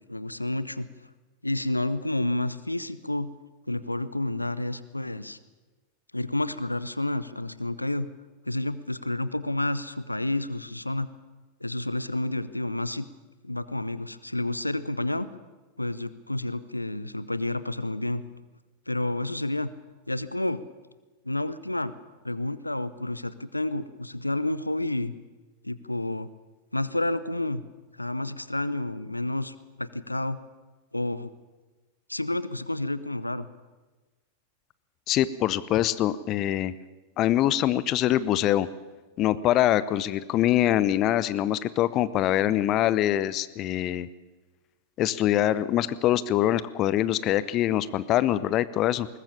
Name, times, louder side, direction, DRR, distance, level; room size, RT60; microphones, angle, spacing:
voice 1, 0.1-0.9 1.4-3.3 3.7-5.4 6.1-8.1 8.4-11.1 11.6-13.1 13.4-15.3 15.8-18.2 18.9-19.7 20.1-20.6 21.2-21.9 22.2-25.1 25.6-26.3 26.7-27.6 27.9-30.4 30.9-31.3 32.1-33.5, left 1 dB, 85° left, 16 dB, 0.7 m, -30 dB
voice 2, 35.1-36.7 37.2-38.7 39.2-44.1 45.0-49.1, left 13 dB, 35° left, 17 dB, 0.7 m, -24 dB
21.5 x 19.5 x 7.2 m, 1.2 s
figure-of-eight pair, 90°, 0 cm